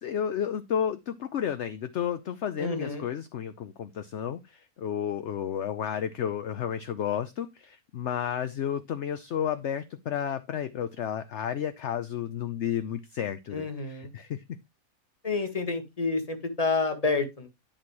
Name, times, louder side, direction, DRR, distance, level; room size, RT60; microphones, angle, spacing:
voice 1, 0.0-14.4 15.3-15.4, left 9 dB, 60° left, 0.9 m, -32 dB
voice 2, 2.6-3.0 13.5-14.1 15.2-17.5, left 3 dB, 25° left, 1.7 m, -29 dB
10.5 x 4.3 x 4.7 m
omnidirectional pair, 1.5 m